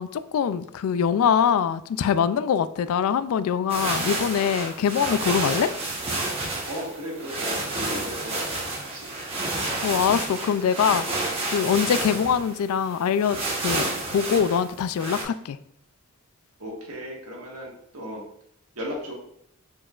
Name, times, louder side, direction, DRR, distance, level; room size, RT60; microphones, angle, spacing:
voice 1, 0.0-5.7 9.8-15.6, left 7 dB, 75° left, 14 dB, 0.3 m, -23 dB
sound 1, 3.7-15.2, right 2 dB, 25° right, 0.9 m, -30 dB
voice 2, 6.7-9.1 16.6-18.2 18.7-19.1, equal, 80° right, -2 dB, 1.6 m, -36 dB
4.8 x 4.5 x 2.4 m, 0.71 s
head